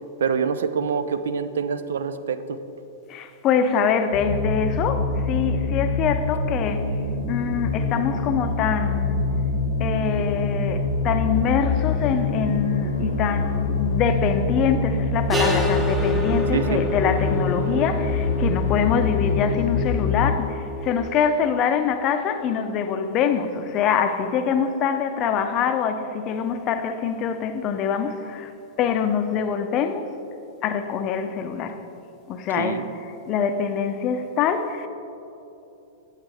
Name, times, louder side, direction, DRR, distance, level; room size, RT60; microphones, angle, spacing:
voice 1, 0.2-2.6 16.5-16.8 32.6-32.8, right 6 dB, 70° right, 11 dB, 0.4 m, -26 dB
voice 2, 3.1-6.9 7.3-9.2 9.8-28.5 28.8-30.1 30.6-31.8 32.3-34.9, left 7 dB, 35° left, 8 dB, 0.6 m, -24 dB
sound 1, 4.1-20.3, left 3 dB, 75° left, 0.9 m, -25 dB
sound 2, 15.3-21.1, left 2 dB, 15° right, 0.8 m, -28 dB
8.2 x 8.1 x 3.3 m, 2.9 s
figure-of-eight pair, 100°, 0 cm